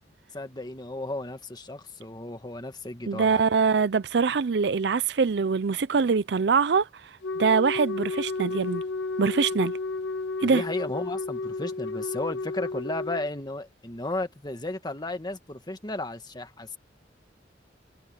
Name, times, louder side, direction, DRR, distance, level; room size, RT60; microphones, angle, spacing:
voice 1, 0.3-3.4 10.4-16.8, left 2 dB, 25° left, 1.7 m, -34 dB
voice 2, 3.1-6.9 7.4-8.8 9.2-9.7 10.4-10.6, right 5 dB, 65° right, 0.5 m, -23 dB
Wind instrument woodwind instrument, 7.2-13.3, left 3 dB, 85° left, 1.5 m, -32 dB
head